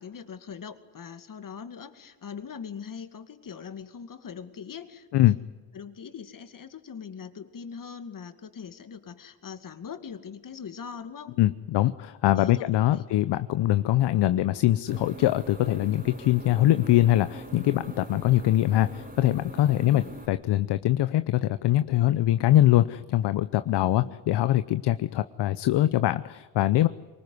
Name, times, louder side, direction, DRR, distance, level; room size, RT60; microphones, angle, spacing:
voice 1, 0.0-5.3 5.7-11.4 12.3-13.0 19.8-20.1 23.7-24.2, left 6 dB, 45° left, 9 dB, 2.3 m, -41 dB
voice 2, 11.4-26.9, left 14 dB, 65° left, 13 dB, 0.8 m, -23 dB
sound 1, 14.9-20.3, right 2 dB, 20° right, 3.9 m, -42 dB
23.5 x 20.0 x 9.7 m, 1.3 s
supercardioid pair, 75°, 44 cm